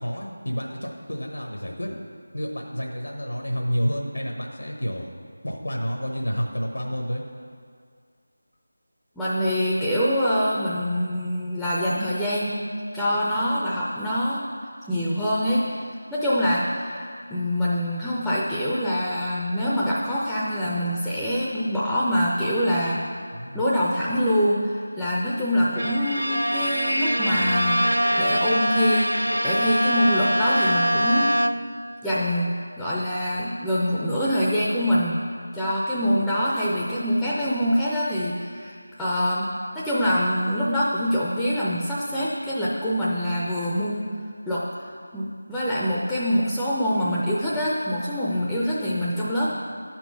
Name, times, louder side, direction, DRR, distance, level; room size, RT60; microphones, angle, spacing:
voice 1, 0.0-2.0 2.3-5.1 5.4-7.2 23.3-23.6, equal, 75° left, 0 dB, 1.1 m, -29 dB
voice 2, 9.2-12.6 12.9-14.5 14.9-15.7 16.1-23.2 23.5-27.9 28.2-29.1 29.4-31.4 32.0-35.2 35.5-44.1 44.5-44.7 45.1-49.5, equal, 5° left, -8 dB, 0.6 m, -25 dB
Bowed string instrument, 25.8-31.9, equal, 90° right, 0.3 m, -23 dB
11.0 x 4.5 x 5.6 m, 2.2 s
figure-of-eight pair, 165°, 0 cm